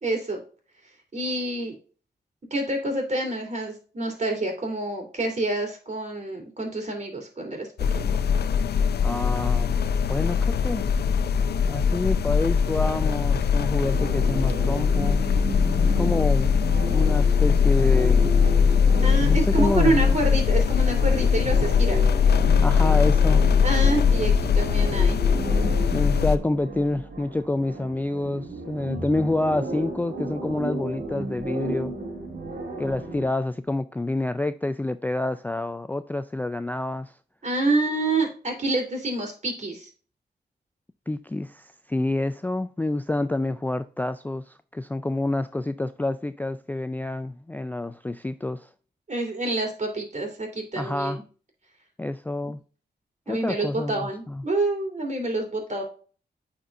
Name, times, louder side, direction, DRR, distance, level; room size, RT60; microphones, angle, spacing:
voice 1, 0.0-0.4 1.1-1.7 2.5-7.7 7.9-8.1 19.0-22.0 23.6-25.2 37.4-39.9 49.1-51.2 52.4-52.5 53.3-55.8, right 2 dB, 45° right, 3.0 m, -27 dB
sound 1, 7.8-26.4, left 6 dB, 70° left, 0.5 m, -21 dB
voice 2, 9.0-9.8 10.1-10.8 11.7-15.2 15.6-16.5 16.9-18.2 19.2-20.0 22.6-23.5 25.9-31.9 32.8-37.1 41.1-48.7 50.8-51.2 52.0-52.6 53.3-54.4, left 2 dB, 10° left, 0.3 m, -28 dB
sound 2, 13.8-33.3, right 2 dB, 70° right, 2.1 m, -34 dB
9.1 x 4.4 x 2.4 m
cardioid pair, 55°, 17 cm